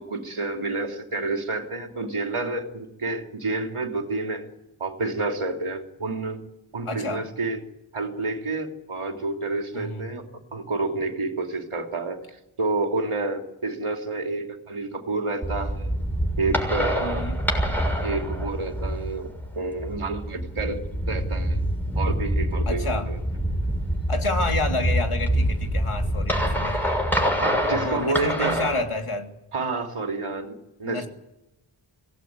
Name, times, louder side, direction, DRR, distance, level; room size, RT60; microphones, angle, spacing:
voice 1, 0.0-4.5 4.8-6.4 6.7-7.6 7.9-12.2 12.6-15.9 16.4-17.2 18.0-20.8 21.1-21.6 22.0-23.2 27.4-28.6 29.5-31.1, right 3 dB, 80° right, 4 dB, 3.1 m, -29 dB
voice 2, 6.8-7.2 9.7-10.1 17.0-17.4 22.6-23.1 24.1-27.0 27.6-29.3 30.8-31.1, left 2 dB, 85° left, 3 dB, 3.3 m, -29 dB
sound 1, 15.4-28.8, equal, 5° left, 6.7 m, -26 dB
25.0 x 17.5 x 9.5 m, 0.92 s
wide cardioid pair, 90°, 50 cm